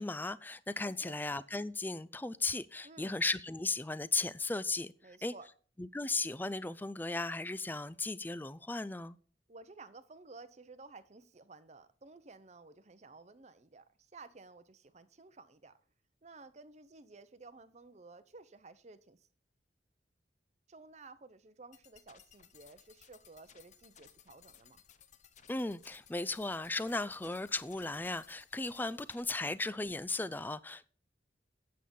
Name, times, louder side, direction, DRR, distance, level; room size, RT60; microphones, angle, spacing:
voice 1, 0.0-4.9 5.2-5.3 5.8-9.2 25.5-30.9, left 3 dB, 10° left, 0.4 m, -36 dB
voice 2, 0.8-1.2 2.8-3.2 5.0-5.5 9.5-15.8 16.2-19.3 20.7-24.8, right 3 dB, 40° right, 0.7 m, -54 dB
sound 1, 21.7-29.2, left 8 dB, 40° left, 0.8 m, -61 dB
8.6 x 7.5 x 5.3 m
head